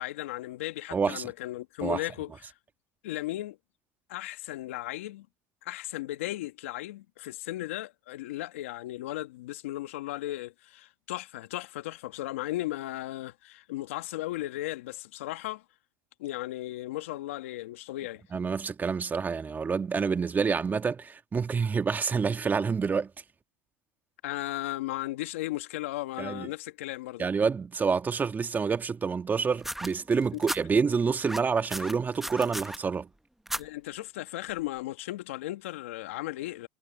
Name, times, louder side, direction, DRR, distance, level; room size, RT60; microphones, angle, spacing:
voice 1, 0.0-2.5 3.0-3.6 4.1-5.3 5.6-15.6 16.2-18.2 24.2-27.3 30.3-30.4 33.6-36.7, left 16 dB, 85° left, 2.0 m, -36 dB
voice 2, 0.9-1.3 1.8-2.0 18.3-23.1 26.2-26.5 27.2-33.1, right 5 dB, 25° right, 1.9 m, -28 dB
sound 1, 29.6-30.6 31.2-32.8 33.5-33.6 34.6-34.7, right 1 dB, 5° right, 1.2 m, -35 dB
hypercardioid pair, 85°, 7 cm